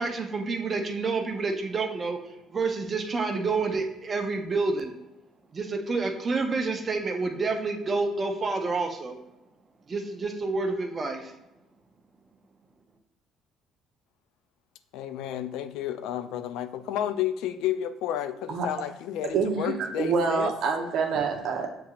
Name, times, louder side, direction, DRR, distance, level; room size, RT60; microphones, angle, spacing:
voice 1, 0.0-2.2 2.5-4.9 5.5-9.2 9.9-11.3, right 3 dB, 30° right, 0.7 m, -28 dB
voice 2, 14.9-20.5, left 11 dB, 80° left, 0.3 m, -31 dB
voice 3, 19.2-21.7, right 5 dB, 65° right, 0.8 m, -26 dB
6.6 x 2.8 x 2.4 m
cardioid pair, 90°, 0 cm